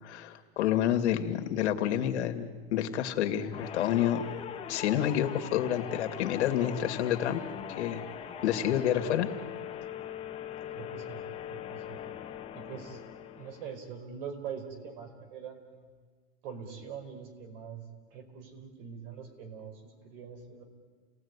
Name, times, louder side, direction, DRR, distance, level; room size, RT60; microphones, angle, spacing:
voice 1, 0.0-4.3 4.7-7.4 7.8-8.0 8.4-9.3, left 10 dB, 85° left, 7 dB, 2.5 m, -29 dB
sound 1, 3.5-13.9, left 9 dB, 15° left, 1.5 m, -41 dB
voice 2, 10.7-11.2 11.5-12.0 12.5-13.0 13.3-15.9 16.4-17.8 18.1-20.6, right 7 dB, 55° right, 6 dB, 5.2 m, -43 dB
30.0 x 18.5 x 9.8 m, 1.5 s
supercardioid pair, 165°, 33 cm